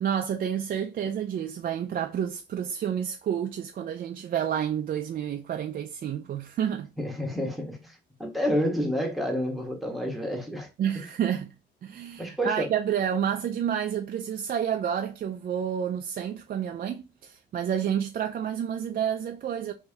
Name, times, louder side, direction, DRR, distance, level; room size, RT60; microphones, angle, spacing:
voice 1, 0.0-6.9 10.8-11.5 11.8-19.7, right 9 dB, 50° right, 0.4 m, -29 dB
voice 2, 7.0-10.7 12.2-12.7, equal, ahead, 1.2 m, -29 dB
3.3 x 2.7 x 3.4 m
cardioid pair, 90°, 20 cm